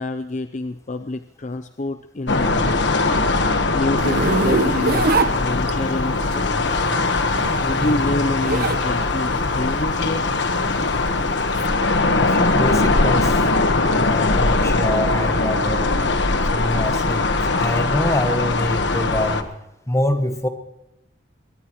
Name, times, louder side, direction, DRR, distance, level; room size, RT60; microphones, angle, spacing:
voice 1, 0.0-2.7 3.7-6.6 7.6-10.3, left 2 dB, 40° left, 9 dB, 0.6 m, -27 dB
sound 1, 2.3-19.4, left 3 dB, 65° left, 1.3 m, -20 dB
Zipper (clothing), 4.0-6.0 7.2-8.8 9.2-11.7, right 3 dB, 55° right, 1.0 m, -24 dB
voice 2, 12.2-13.4 13.9-16.0 16.4-19.5 19.9-20.5, left 1 dB, 15° left, 7 dB, 1.5 m, -25 dB
23.0 x 18.5 x 3.1 m, 0.92 s
head